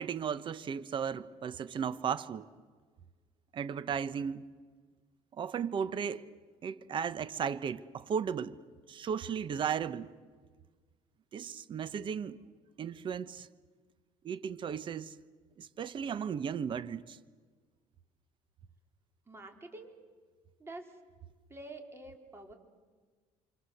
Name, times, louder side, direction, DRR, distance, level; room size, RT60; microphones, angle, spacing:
voice 1, 0.0-2.5 3.5-4.5 5.4-6.2 6.6-8.6 8.9-10.1 11.3-12.4 12.8-13.5 14.2-15.1 15.6-17.2, right 7 dB, 40° right, 1.0 m, -35 dB
voice 2, 19.3-20.0 20.6-21.0 21.5-22.6, right 2 dB, 20° right, 4.4 m, -47 dB
28.0 x 25.5 x 7.9 m
cardioid pair, 120°, 13 cm